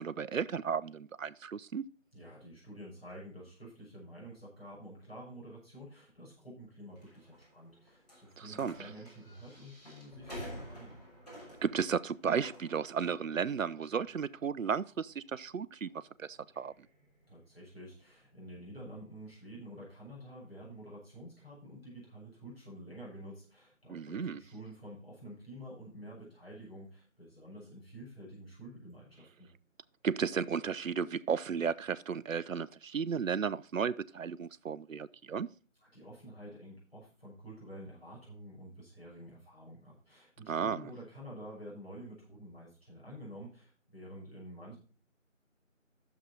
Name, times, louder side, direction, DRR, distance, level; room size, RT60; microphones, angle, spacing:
voice 1, 0.0-1.8 8.6-8.7 11.6-15.9 16.2-16.7 23.9-24.4 30.0-35.5 40.5-40.8, right 6 dB, 75° right, 0.6 m, -34 dB
voice 2, 2.1-11.0 17.3-29.5 35.8-44.8, equal, 50° left, 6.0 m, -49 dB
sound 1, 7.0-18.9, equal, 30° left, 3.3 m, -52 dB
10.0 x 6.9 x 4.1 m
figure-of-eight pair, 175°, 39 cm